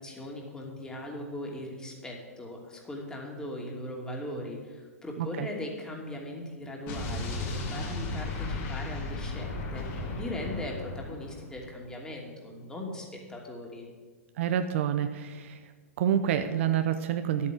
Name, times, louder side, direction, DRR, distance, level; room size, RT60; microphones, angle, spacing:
voice 1, 0.0-13.9, left 1 dB, 10° left, -1 dB, 2.8 m, -39 dB
voice 2, 5.2-5.5 14.4-15.7 16.0-17.5, right 9 dB, 55° right, 9 dB, 0.8 m, -28 dB
Explosion, 6.9-11.6, left 2 dB, 40° left, 3.5 m, -35 dB
11.0 x 8.5 x 7.7 m, 1.5 s
hypercardioid pair, 115°, 8 cm